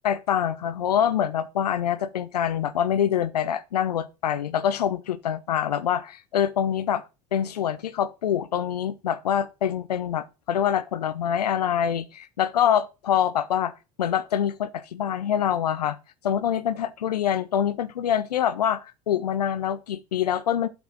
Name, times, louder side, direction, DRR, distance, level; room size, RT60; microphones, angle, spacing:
voice 1, 0.0-7.0 7.3-13.7 14.0-16.0 16.2-20.7, left 9 dB, 70° left, 0.9 m, -25 dB
7.8 x 4.2 x 6.0 m
figure-of-eight pair, 70°, 21 cm